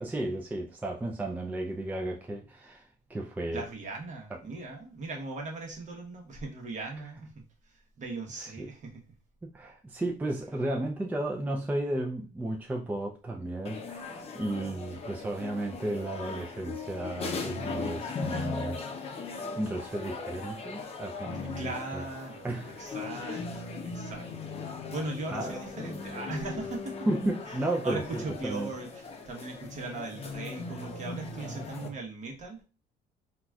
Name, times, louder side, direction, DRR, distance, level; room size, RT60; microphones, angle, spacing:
voice 1, 0.0-3.6 8.4-8.7 9.5-22.0 22.4-22.8 23.3-23.4 25.3-25.6 27.1-28.7 31.4-31.9, right 1 dB, 10° right, 0.4 m, -34 dB
voice 2, 3.5-9.0 21.4-27.1 27.5-27.6 27.8-32.6, right 3 dB, 45° right, 1.0 m, -39 dB
sound 1, 13.6-31.9, left 4 dB, 35° left, 0.6 m, -39 dB
3.9 x 2.3 x 2.3 m
cardioid pair, 110°, 17 cm